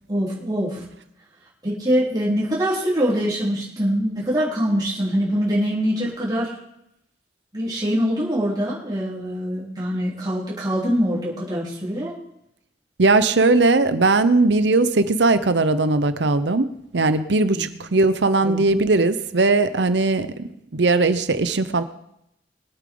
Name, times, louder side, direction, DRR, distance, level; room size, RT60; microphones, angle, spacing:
voice 1, 0.1-0.8 1.6-6.5 7.5-12.1 17.5-17.7 18.4-18.6, equal, 25° right, -7 dB, 3.6 m, -23 dB
voice 2, 13.0-21.8, right 3 dB, 85° right, 12 dB, 0.8 m, -19 dB
22.0 x 8.6 x 3.9 m, 0.78 s
head